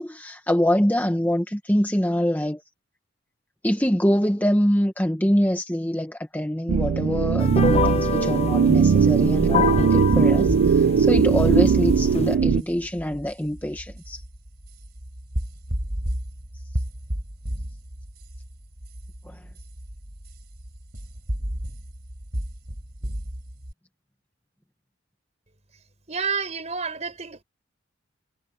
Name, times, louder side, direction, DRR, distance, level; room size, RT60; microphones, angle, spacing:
voice 1, 0.0-2.6 3.6-14.2 19.2-19.4, equal, 10° left, 1.3 m, -24 dB
sound 1, 6.7-12.6, right 6 dB, 80° right, 0.4 m, -19 dB
sound 2, 7.4-12.4, left 5 dB, 30° left, 1.0 m, -28 dB
sound 3, 10.0-23.7, equal, 50° right, 4.0 m, -33 dB
voice 2, 26.1-27.4, right 5 dB, 35° right, 5.0 m, -29 dB
head